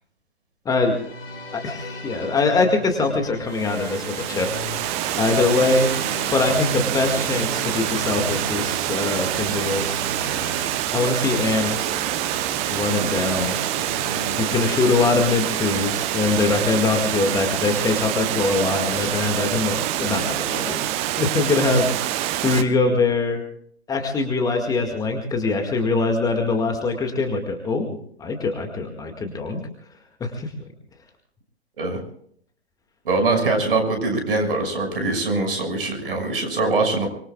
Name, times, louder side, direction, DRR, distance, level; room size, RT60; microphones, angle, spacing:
voice 1, 0.7-1.0 1.5-5.9 6.3-10.0 10.9-11.9 12.7-13.6 14.4-23.4 23.9-27.9 28.2-29.6 30.2-30.5, left 3 dB, 10° left, 3 dB, 2.0 m, -23 dB
sound 1, 0.8-19.9, left 2 dB, 65° left, 4.8 m, -38 dB
Water, 3.5-22.6, right 13 dB, 20° right, 0.8 m, -26 dB
voice 2, 33.0-37.1, right 3 dB, 60° right, 5 dB, 6.4 m, -22 dB
24.5 x 22.5 x 2.4 m, 0.62 s
figure-of-eight pair, 125°, 33 cm